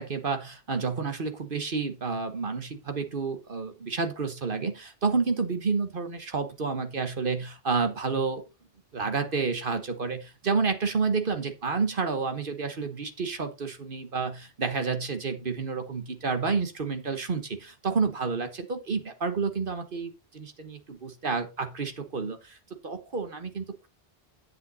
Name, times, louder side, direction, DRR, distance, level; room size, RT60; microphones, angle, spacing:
voice 1, 0.0-8.4 8.9-22.6 22.8-23.9, right 4 dB, 60° right, 8 dB, 1.3 m, -30 dB
9.0 x 8.0 x 4.1 m, 0.27 s
omnidirectional pair, 1.0 m